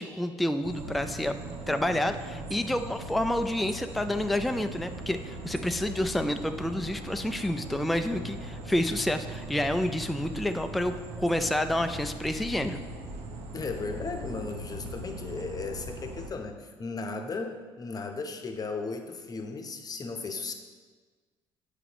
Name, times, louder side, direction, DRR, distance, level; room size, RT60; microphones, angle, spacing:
voice 1, 0.0-1.4 1.7-12.8, left 1 dB, ahead, 7 dB, 0.3 m, -29 dB
sound 1, 0.6-16.3, right 2 dB, 70° right, 0.8 m, -40 dB
voice 2, 13.5-20.5, left 4 dB, 35° left, 5 dB, 0.8 m, -36 dB
7.9 x 4.9 x 3.0 m, 1.5 s
hypercardioid pair, 60°, 12 cm